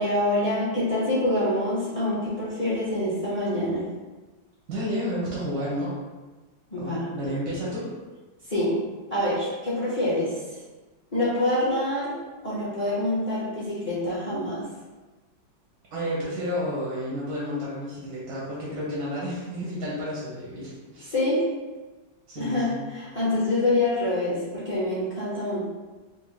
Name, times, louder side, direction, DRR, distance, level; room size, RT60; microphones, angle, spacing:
voice 1, 0.0-3.9 6.7-7.2 8.4-10.6 11.1-12.2 12.4-14.7 21.1-21.5 22.4-25.6, left 1 dB, 30° left, -9 dB, 0.7 m, -26 dB
voice 2, 4.7-5.9 6.8-7.9 15.9-21.1 22.3-22.8, equal, 80° right, -7 dB, 1.6 m, -31 dB
4.3 x 2.1 x 3.1 m, 1.2 s
omnidirectional pair, 1.9 m